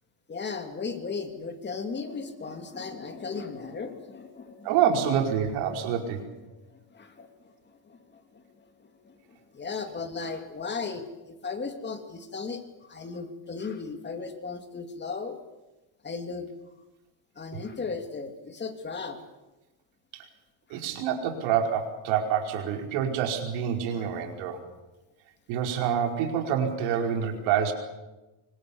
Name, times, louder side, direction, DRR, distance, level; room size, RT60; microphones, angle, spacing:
voice 1, 0.3-4.8 5.8-6.0 6.5-15.4 16.0-16.5 17.4-19.2 20.7-20.8 23.9-24.1, left 4 dB, 20° left, 6 dB, 2.7 m, -37 dB
voice 2, 4.6-6.2 17.5-17.6 20.1-20.2 20.7-24.6 25.5-27.7, right 8 dB, 75° right, 3 dB, 5.0 m, -27 dB
25.5 x 24.5 x 7.1 m, 1.1 s
cardioid pair, 140°, 46 cm